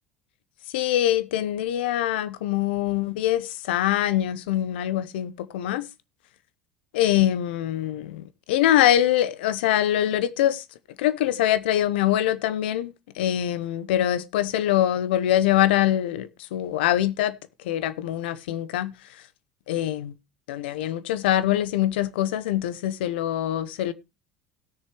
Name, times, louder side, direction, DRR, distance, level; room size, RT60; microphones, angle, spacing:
voice 1, 0.7-5.9 6.9-10.6 11.0-19.2 19.7-20.1 20.5-23.9, left 12 dB, 85° left, 0.8 m, -24 dB
17.5 x 6.7 x 3.1 m
hypercardioid pair, 85°, 5 cm